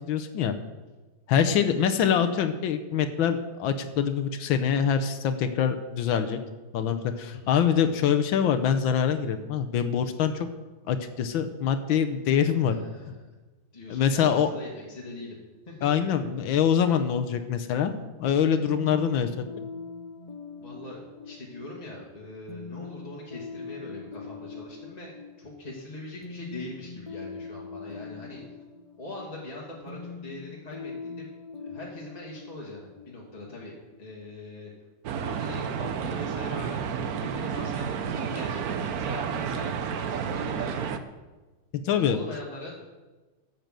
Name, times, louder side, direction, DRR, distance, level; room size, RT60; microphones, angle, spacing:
voice 1, 0.1-0.5 1.3-6.4 6.7-10.5 10.9-12.7 13.9-14.5 15.8-17.9 18.2-19.5 41.8-42.2, left 8 dB, 80° left, 8 dB, 1.6 m, -24 dB
voice 2, 12.7-13.3 13.7-15.4 15.7-16.1 20.6-25.1 25.4-28.4 29.0-31.3 31.6-34.7 35.2-41.0 41.9-42.8, left 2 dB, 20° left, -4 dB, 2.1 m, -42 dB
sound 1, 18.7-34.3, left 4 dB, 45° left, 0.4 m, -43 dB
sound 2, 35.0-41.0, right 7 dB, 60° right, 1.1 m, -31 dB
12.0 x 7.9 x 7.5 m, 1.2 s
omnidirectional pair, 2.2 m